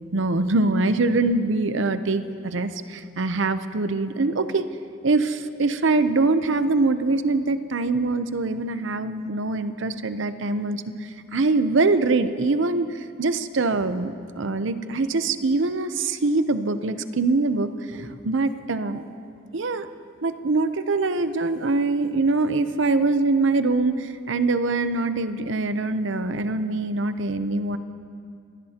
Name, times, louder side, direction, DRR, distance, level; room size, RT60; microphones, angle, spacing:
voice 1, 0.1-4.7 5.0-10.8 11.3-19.0 19.5-19.9 20.2-27.8, right 3 dB, 65° right, 11 dB, 0.7 m, -23 dB
26.5 x 18.5 x 2.9 m, 2.4 s
head